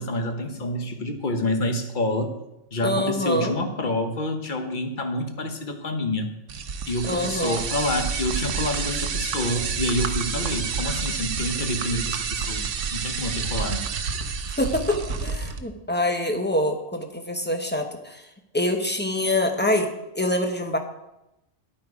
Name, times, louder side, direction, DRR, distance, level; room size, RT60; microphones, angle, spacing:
voice 1, 0.0-2.4 2.7-6.3 6.9-13.9, left 1 dB, 45° left, 6 dB, 1.2 m, -28 dB
voice 2, 2.8-3.5 7.0-7.6 14.6-18.2 18.5-19.9 20.1-20.8, left 1 dB, 10° left, 5 dB, 0.9 m, -25 dB
sound 1, 6.5-15.6, right 6 dB, 75° right, 1.1 m, -29 dB
10.5 x 8.7 x 4.9 m, 0.90 s
omnidirectional pair, 1.3 m